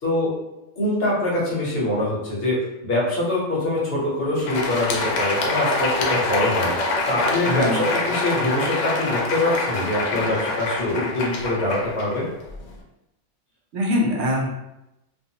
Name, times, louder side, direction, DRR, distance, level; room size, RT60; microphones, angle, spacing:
voice 1, 0.0-0.3 0.8-6.7 7.1-12.2, left 1 dB, 55° left, -6 dB, 1.1 m, -24 dB
Crowd, 4.3-12.7, left 2 dB, 85° left, 0.9 m, -25 dB
voice 2, 7.4-7.9 13.7-14.5, left 1 dB, 80° right, -1 dB, 1.0 m, -23 dB
2.6 x 2.5 x 2.7 m, 0.91 s
omnidirectional pair, 1.3 m